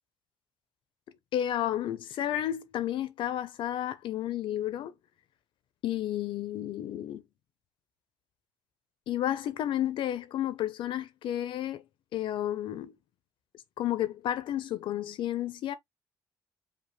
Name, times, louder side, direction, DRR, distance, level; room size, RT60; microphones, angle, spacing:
voice 1, 1.3-4.9 5.8-7.2 9.1-11.8 12.1-12.9 13.8-15.7, left 12 dB, 85° left, 0.7 m, -31 dB
5.2 x 2.4 x 3.3 m
cardioid pair, 150°, 8 cm